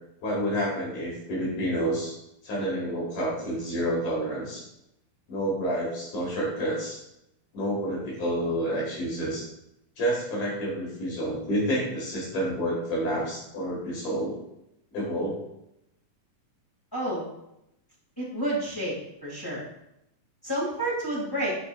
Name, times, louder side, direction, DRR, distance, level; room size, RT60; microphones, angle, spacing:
voice 1, 0.2-2.1 2.4-4.6 5.3-7.0 7.5-9.5 10.0-14.3 14.9-15.4, equal, 65° left, -4 dB, 3.3 m, -29 dB
voice 2, 16.9-17.2 18.2-18.9 19.2-19.6 20.4-21.6, right 1 dB, 10° left, -6 dB, 1.8 m, -29 dB
9.9 x 6.4 x 2.5 m, 0.83 s
omnidirectional pair, 3.8 m